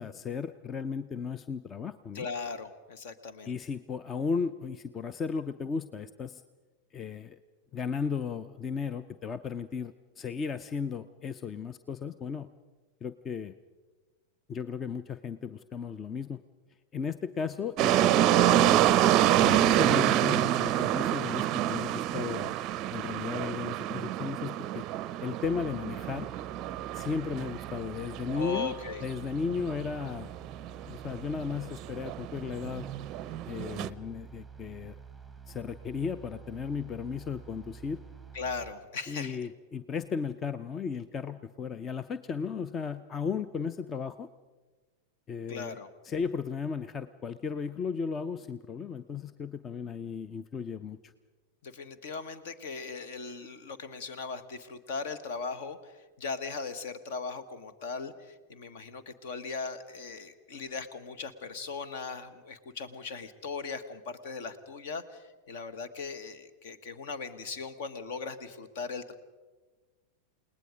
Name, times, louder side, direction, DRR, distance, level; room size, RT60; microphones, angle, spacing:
voice 1, 0.0-2.3 3.5-6.4 6.9-7.4 7.7-12.5 13.0-13.6 14.5-16.4 16.9-18.8 19.4-22.5 22.9-24.8 25.2-26.3 26.9-28.7 29.0-30.3 30.9-32.9 33.5-35.0 35.5-38.0 39.1-44.3 45.3-45.8 46.0-51.1, left 6 dB, 25° left, 14 dB, 0.6 m, -35 dB
voice 2, 2.1-3.6 28.3-29.0 38.3-39.4 45.5-45.9 51.6-69.1, left 4 dB, 55° left, 13 dB, 1.4 m, -38 dB
sound 1, 17.8-33.9, right 12 dB, 35° right, 0.6 m, -27 dB
sound 2, 25.4-38.7, right 6 dB, ahead, 1.3 m, -49 dB
29.5 x 19.0 x 5.1 m, 1.3 s
figure-of-eight pair, 90°, 0 cm